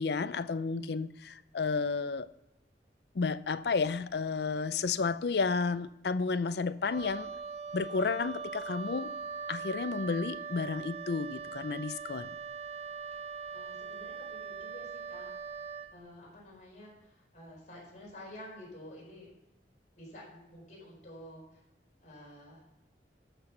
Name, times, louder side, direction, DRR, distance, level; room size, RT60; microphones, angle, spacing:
voice 1, 0.0-2.3 3.1-7.3 7.7-9.1 9.5-12.3, left 4 dB, 65° left, 0.5 m, -32 dB
Wind instrument woodwind instrument, 6.8-16.0, right 5 dB, 35° right, 0.7 m, -41 dB
voice 2, 13.5-15.3 15.9-19.3 20.0-21.6 22.0-22.8, left 1 dB, 45° left, 4.6 m, -50 dB
13.5 x 5.8 x 5.8 m
head